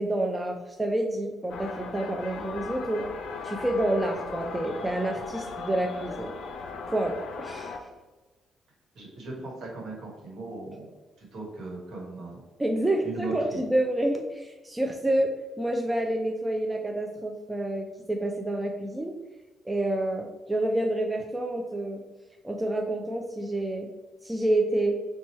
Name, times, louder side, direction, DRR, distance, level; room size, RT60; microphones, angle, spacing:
voice 1, 0.0-3.1 3.4-6.3 6.9-7.9 12.6-19.1 19.6-22.0 22.4-23.9 24.2-25.0, right 1 dB, 15° right, 3 dB, 0.3 m, -28 dB
sound 1, 1.5-7.8, left 4 dB, 70° left, 0.4 m, -37 dB
voice 2, 8.9-10.9 11.2-12.4 13.0-13.6, right 3 dB, 65° right, -2 dB, 1.2 m, -38 dB
2.9 x 2.2 x 4.2 m, 1.2 s
cardioid pair, 90°, 0 cm